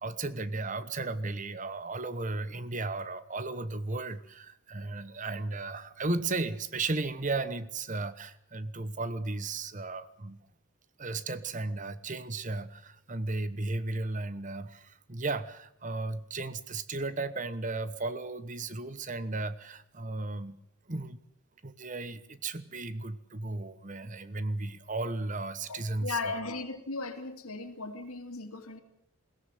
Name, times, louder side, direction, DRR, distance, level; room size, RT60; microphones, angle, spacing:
voice 1, 0.0-10.4 11.0-20.6 20.9-21.2 21.6-26.4, right 3 dB, 35° right, 14 dB, 1.1 m, -35 dB
voice 2, 25.7-28.8, left 3 dB, 90° left, 7 dB, 2.8 m, -37 dB
21.5 x 17.0 x 9.3 m, 0.76 s
head